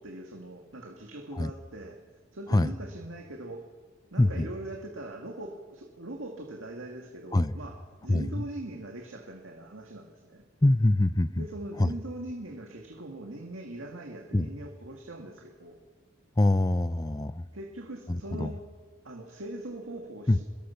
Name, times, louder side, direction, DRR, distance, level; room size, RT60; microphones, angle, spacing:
voice 1, 0.0-2.0 2.3-3.7 4.1-10.4 11.4-15.8 17.5-18.6 19.0-20.5, right 1 dB, 85° right, 2 dB, 2.0 m, -41 dB
voice 2, 8.1-8.4 10.6-11.4 11.8-12.0 14.3-14.5 16.4-17.5 18.1-18.5 20.3-20.4, left 1 dB, 20° left, 15 dB, 0.5 m, -24 dB
24.5 x 21.5 x 5.8 m, 1.5 s
head